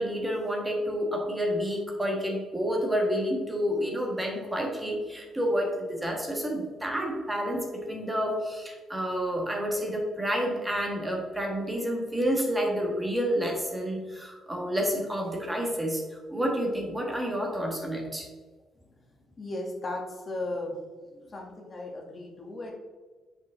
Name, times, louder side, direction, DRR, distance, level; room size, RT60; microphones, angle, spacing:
voice 1, 0.0-18.3, equal, 10° right, 0 dB, 1.5 m, -29 dB
voice 2, 19.4-20.7 21.1-22.7, left 2 dB, 40° left, -1 dB, 1.7 m, -36 dB
6.9 x 5.2 x 3.7 m, 1.4 s
cardioid pair, 90°, 0 cm